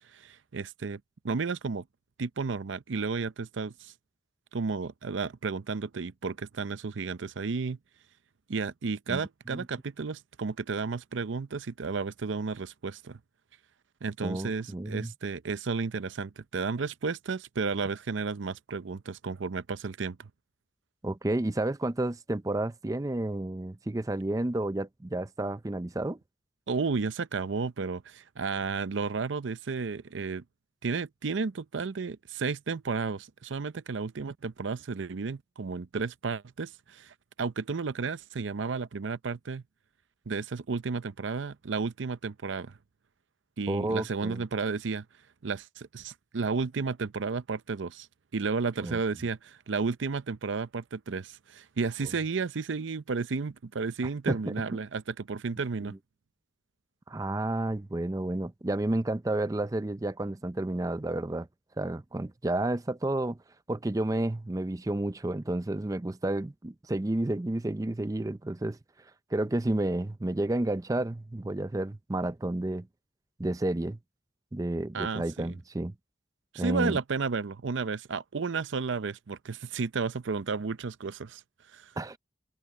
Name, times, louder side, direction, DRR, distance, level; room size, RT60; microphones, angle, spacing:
voice 1, 0.1-1.8 2.2-3.9 4.5-7.8 8.5-13.2 14.0-20.3 26.7-30.4 30.8-39.6 40.3-42.7 43.6-45.0 45.4-48.1 48.3-55.9 74.9-75.6 76.5-81.4 81.7-81.9, right 4 dB, 75° right, 0.6 m, -32 dB
voice 2, 14.2-15.1 21.0-26.2 43.7-44.4 48.8-49.0 54.3-54.5 57.1-61.5 61.8-63.4 63.7-68.8 69.3-72.9 73.4-74.0 74.5-75.9 76.6-77.0 82.0-82.2, right 1 dB, 20° right, 0.5 m, -31 dB
head